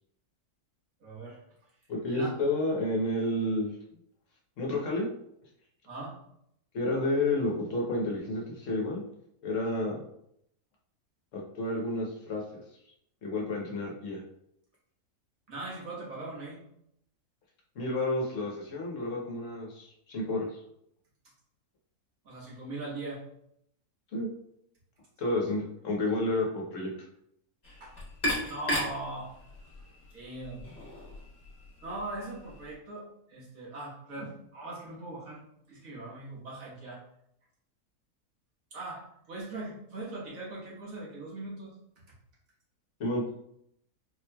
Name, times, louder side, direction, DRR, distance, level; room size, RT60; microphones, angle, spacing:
voice 1, 1.0-1.4 2.1-2.3 5.8-6.2 15.5-16.6 22.2-23.2 27.8-27.9 28.5-29.3 30.1-30.7 31.8-35.4 35.7-37.0 38.7-41.8, right 2 dB, 65° right, -6 dB, 1.6 m, -40 dB
voice 2, 1.9-3.7 4.6-5.1 6.7-9.0 9.4-10.0 11.3-12.6 13.2-14.2 17.8-20.6 24.1-24.3 25.2-26.9 43.0-43.4, left 2 dB, 60° left, -1 dB, 1.1 m, -30 dB
sound 1, 27.6-32.7, equal, 30° left, 1.2 m, -37 dB
4.2 x 2.9 x 2.2 m, 0.74 s
omnidirectional pair, 1.6 m